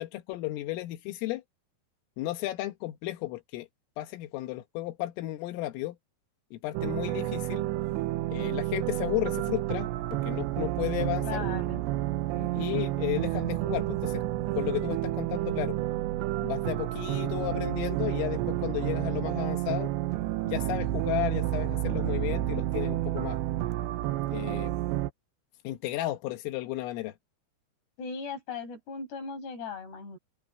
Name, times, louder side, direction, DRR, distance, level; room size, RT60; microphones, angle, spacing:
voice 1, 0.0-1.4 2.2-3.7 4.0-6.0 6.5-7.7 8.3-9.9 10.3-11.4 12.6-14.2 14.6-15.8 16.4-19.9 20.4-23.4 24.3-24.7 25.7-27.1, left 17 dB, 90° left, 3.9 m, -33 dB
sound 1, 6.7-25.1, right 15 dB, 75° right, 2.8 m, -30 dB
voice 2, 11.2-11.8 12.3-12.8 28.0-30.2, left 5 dB, 55° left, 8.5 m, -38 dB
open air
omnidirectional pair, 5.7 m